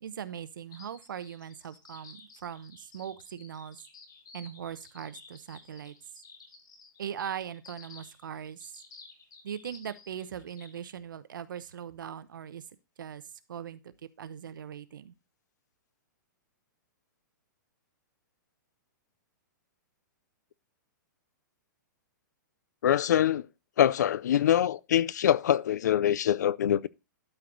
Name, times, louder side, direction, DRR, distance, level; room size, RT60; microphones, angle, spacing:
voice 1, 0.0-3.8 4.3-5.9 7.0-8.7 9.4-12.6 13.0-13.2 13.5-15.1, right 9 dB, 80° right, 0.9 m, -40 dB
sound 1, 0.7-10.8, left 5 dB, 85° left, 4.5 m, -53 dB
voice 2, 22.8-23.5 23.8-26.9, left 10 dB, 60° left, 0.4 m, -24 dB
12.5 x 4.7 x 3.8 m
hypercardioid pair, 175°, 11 cm